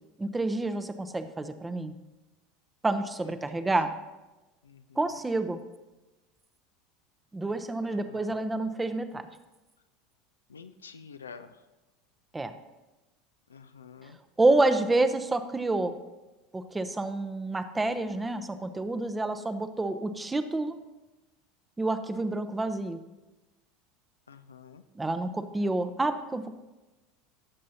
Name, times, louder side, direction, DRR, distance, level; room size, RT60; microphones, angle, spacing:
voice 1, 0.2-1.9 2.8-3.9 5.0-5.6 7.3-9.3 12.3-12.5 14.4-16.0 16.5-20.8 21.8-23.0 25.0-26.4, right 2 dB, 15° right, 10 dB, 0.7 m, -28 dB
voice 2, 3.2-3.7 4.6-5.0 7.9-8.4 10.5-11.6 13.5-14.2 24.3-24.8, left 6 dB, 80° left, 10 dB, 0.4 m, -49 dB
16.5 x 7.5 x 2.8 m, 1.1 s
figure-of-eight pair, 75°, 0 cm